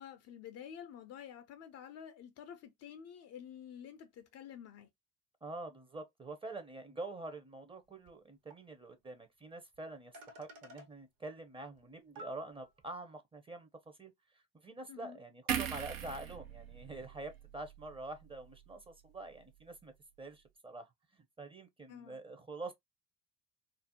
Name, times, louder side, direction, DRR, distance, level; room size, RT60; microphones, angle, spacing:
voice 1, 0.0-4.9 14.9-15.2 21.9-22.2, left 9 dB, 40° left, 0.4 m, -50 dB
voice 2, 5.4-13.7 14.0-19.9 20.2-20.9 21.4-22.7, right 2 dB, 15° right, 0.6 m, -46 dB
sound 1, 8.1-8.2 8.5-8.6 9.7-9.8 10.1-10.9 11.8-11.9 12.2-12.9, equal, 55° right, 1.1 m, -52 dB
sound 2, 15.5-18.9 19.2-19.4, right 8 dB, 85° right, 0.7 m, -41 dB
2.5 x 2.0 x 2.8 m
hypercardioid pair, 70°, 41 cm